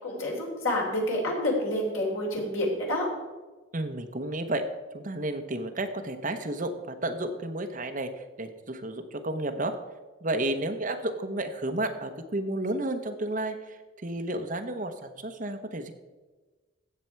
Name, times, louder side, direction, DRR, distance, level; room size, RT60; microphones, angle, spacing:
voice 1, 0.0-3.0, left 1 dB, 85° left, -2 dB, 3.7 m, -28 dB
voice 2, 3.7-4.6 4.9-9.8 10.2-15.9, right 1 dB, 40° right, 6 dB, 1.0 m, -32 dB
16.0 x 6.7 x 4.6 m, 1.3 s
head